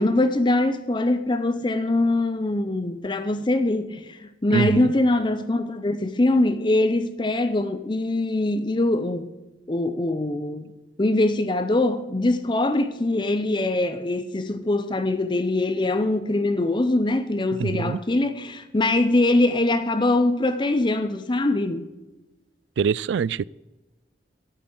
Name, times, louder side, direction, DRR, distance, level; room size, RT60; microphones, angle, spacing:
voice 1, 0.0-9.3 9.7-10.7 11.0-21.8, left 2 dB, 25° left, 0.6 m, -23 dB
voice 2, 4.5-4.9 17.6-18.0 22.8-23.4, right 6 dB, 70° right, 0.3 m, -24 dB
8.9 x 8.6 x 7.9 m
head